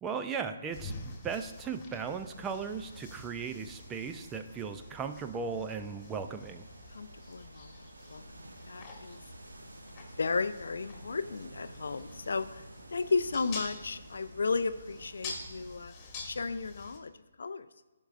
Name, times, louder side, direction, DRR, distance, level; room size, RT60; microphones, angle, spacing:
voice 1, 0.0-6.7, right 5 dB, 15° right, 8 dB, 0.4 m, -37 dB
sound 1, 0.7-17.0, left 3 dB, 25° left, 1.6 m, -48 dB
sound 2, 2.3-15.9, right 1 dB, 80° right, 0.7 m, -52 dB
voice 2, 6.9-7.7 8.1-9.2 10.2-12.6 12.9-15.9 16.2-17.1 17.4-17.7, left 4 dB, 65° left, 13 dB, 0.4 m, -34 dB
15.5 x 5.3 x 2.5 m, 1.2 s
figure-of-eight pair, 145°, 0 cm